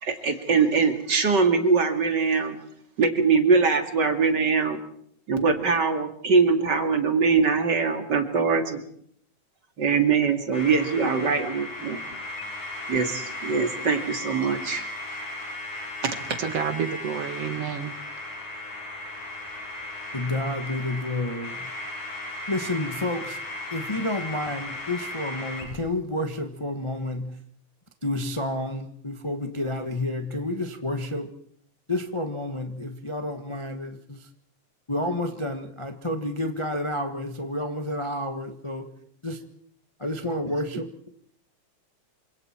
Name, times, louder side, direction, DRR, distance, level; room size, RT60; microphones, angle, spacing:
voice 1, 0.0-2.6 3.0-4.8 5.3-8.8 9.8-12.0 12.9-14.9 16.0-16.1, right 5 dB, 35° right, 2.6 m, -22 dB
sound 1, 10.5-25.7, left 2 dB, 85° left, 7.8 m, -36 dB
voice 2, 16.4-18.0, right 8 dB, 60° right, 2.0 m, -29 dB
voice 3, 20.1-21.6 22.5-23.4 23.7-27.4 28.0-31.3 31.9-34.3 34.9-38.9 39.2-39.4 40.0-41.1, left 1 dB, 30° left, 0.5 m, -30 dB
28.0 x 26.0 x 4.5 m
omnidirectional pair, 3.5 m